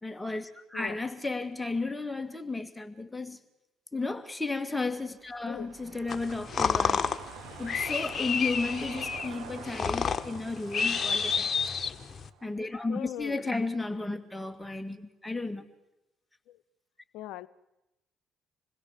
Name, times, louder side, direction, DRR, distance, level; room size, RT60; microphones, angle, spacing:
voice 1, 0.0-3.4 3.9-7.1 7.6-11.5 12.4-15.7, left 3 dB, 10° left, 8 dB, 2.3 m, -33 dB
sound 1, 4.9-13.3 13.7-13.8, right 8 dB, 75° right, 3.1 m, -48 dB
sound 2, 6.1-12.3, left 6 dB, 40° left, 1.6 m, -30 dB
voice 2, 12.9-13.4 16.5-16.6 17.1-17.5, left 13 dB, 70° left, 16 dB, 0.8 m, -40 dB
27.5 x 21.0 x 7.6 m, 0.96 s
hypercardioid pair, 50°, 0 cm